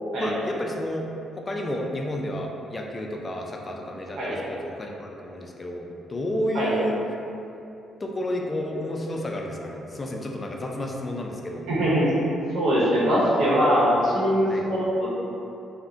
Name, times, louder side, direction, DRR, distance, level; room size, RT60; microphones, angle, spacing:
voice 1, 0.2-1.1 1.4-7.0 8.0-11.7 14.5-14.6, left 1 dB, 30° left, 0 dB, 0.3 m, -31 dB
voice 2, 11.7-12.1 12.5-15.1, equal, 80° right, -8 dB, 0.9 m, -22 dB
3.5 x 2.1 x 2.5 m, 2.7 s
cardioid pair, 90°, 0 cm